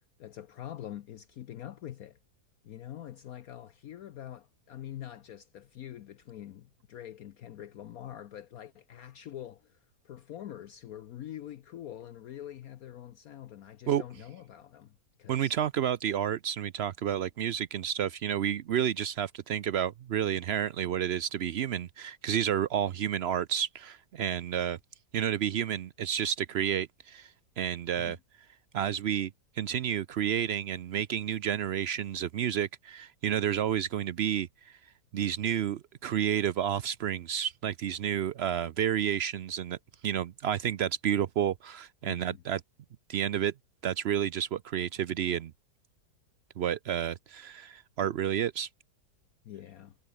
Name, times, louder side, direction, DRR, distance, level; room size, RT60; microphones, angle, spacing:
voice 1, 0.2-2.2 2.6-9.8 10.0-15.5 28.0-28.2 42.0-42.4 49.4-50.0, left 11 dB, 65° left, 1.1 m, -45 dB
voice 2, 15.3-24.8 25.1-27.3 27.6-28.2 28.7-29.3 29.6-34.8 35.1-39.8 40.0-42.6 43.1-43.5 43.8-45.5 46.6-48.7, right 9 dB, 90° right, 0.5 m, -30 dB
omnidirectional pair, 1.8 m